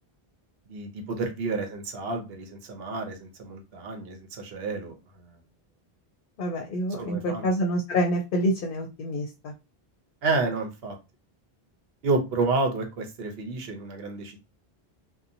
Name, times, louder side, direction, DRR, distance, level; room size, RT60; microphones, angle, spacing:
voice 1, 0.7-5.3 7.0-7.5 10.2-10.9 12.0-14.4, right 3 dB, 75° right, 4 dB, 0.9 m, -30 dB
voice 2, 6.4-9.5, equal, 65° left, 2 dB, 0.7 m, -27 dB
2.8 x 2.1 x 2.5 m, 0.27 s
omnidirectional pair, 1.0 m